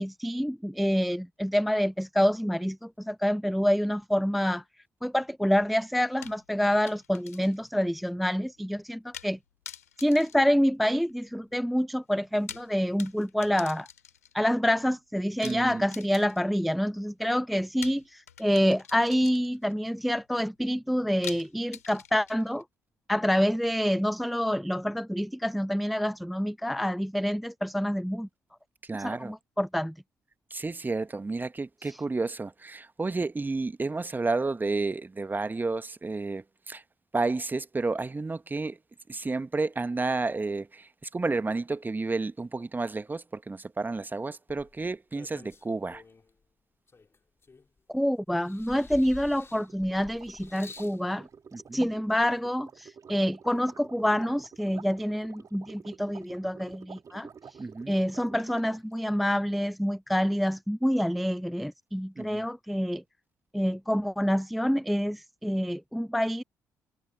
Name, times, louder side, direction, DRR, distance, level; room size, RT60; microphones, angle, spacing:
voice 1, 0.0-4.6 5.0-9.4 10.0-13.9 14.3-22.6 23.1-28.3 29.0-29.9 47.9-51.3 51.7-57.3 57.9-63.0 63.5-66.4, equal, ahead, 0.3 m, -27 dB
sound 1, 6.2-7.7 8.0-8.1 9.1-9.4 9.7-11.2 12.2-14.4 15.4-16.6 17.8-19.7 21.2-22.6, left 8 dB, 85° left, 2.3 m, -45 dB
voice 2, 15.4-15.9 28.8-29.3 30.5-36.8 37.1-38.8 39.1-46.0 51.5-51.9 57.6-57.9 62.1-62.5, right 3 dB, 20° right, 1.4 m, -31 dB
sound 2, 44.5-46.3 46.9-47.9 48.4-51.0 51.9-52.0, left 4 dB, 30° left, 2.0 m, -49 dB
sound 3, 49.5-59.0, right 6 dB, 45° right, 2.7 m, -49 dB
figure-of-eight pair, 40°, 8 cm